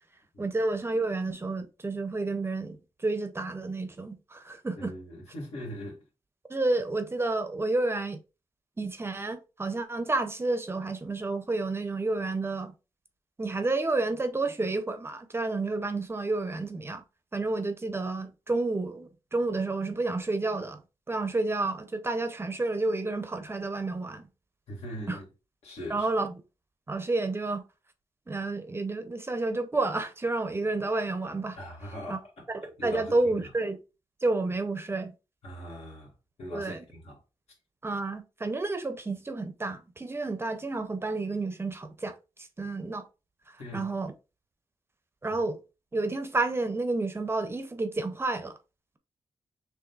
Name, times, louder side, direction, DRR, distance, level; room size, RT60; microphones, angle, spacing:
voice 1, 0.4-4.9 6.5-8.2 8.8-12.7 13.4-17.0 17.3-20.8 21.1-24.2 25.1-25.2 25.9-26.3 26.9-27.6 28.3-31.6 32.1-32.2 32.5-33.8 34.2-35.1 36.5-36.8 37.8-43.0 43.7-44.1 45.2-45.6 45.9-48.5, right 2 dB, 20° right, 0.5 m, -30 dB
voice 2, 4.8-6.0 24.7-25.3 25.6-26.1 31.6-32.5 32.8-33.3 35.4-36.1 36.4-37.2 43.6-43.9 45.3-45.4, equal, 80° left, 1.9 m, -41 dB
6.3 x 2.5 x 2.3 m
wide cardioid pair, 155°, 11 cm